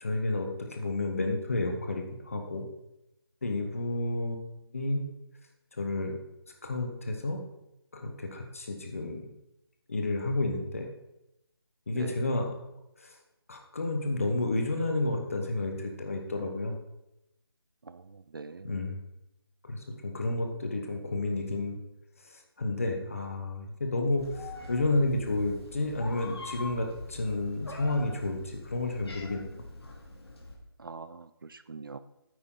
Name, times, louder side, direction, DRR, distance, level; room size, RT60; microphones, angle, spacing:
voice 1, 0.0-2.6 3.4-4.4 4.7-5.0 5.8-6.2 6.6-7.4 7.9-9.3 9.9-10.9 11.9-12.5 13.5-16.8 18.6-19.0 19.6-21.8 22.6-24.3 24.7-29.6, left 2 dB, 35° left, 4 dB, 1.1 m, -31 dB
voice 2, 17.9-18.7 30.8-32.0, right 4 dB, 55° right, 13 dB, 0.5 m, -43 dB
Meow, 24.2-30.5, left 2 dB, 75° left, 2.4 m, -43 dB
9.3 x 8.1 x 3.8 m, 0.89 s
hypercardioid pair, 180°, 14 cm